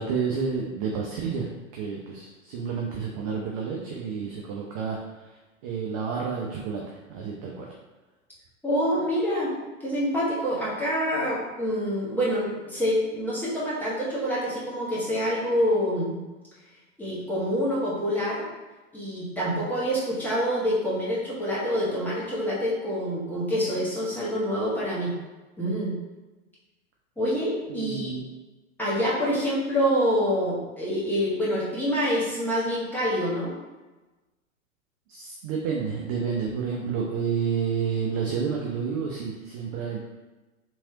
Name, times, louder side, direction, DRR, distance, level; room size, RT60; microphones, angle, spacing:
voice 1, 0.0-1.4 1.7-5.0 5.6-6.8 7.1-7.7 27.7-28.2 35.1-40.0, right 6 dB, 30° right, -2 dB, 0.4 m, -30 dB
voice 2, 8.6-9.5 9.8-16.2 17.0-18.4 18.9-25.1 25.6-25.9 27.2-28.1 28.8-33.6, equal, 5° left, -8 dB, 1.1 m, -26 dB
3.5 x 2.9 x 2.8 m, 1.2 s
figure-of-eight pair, 100°, 41 cm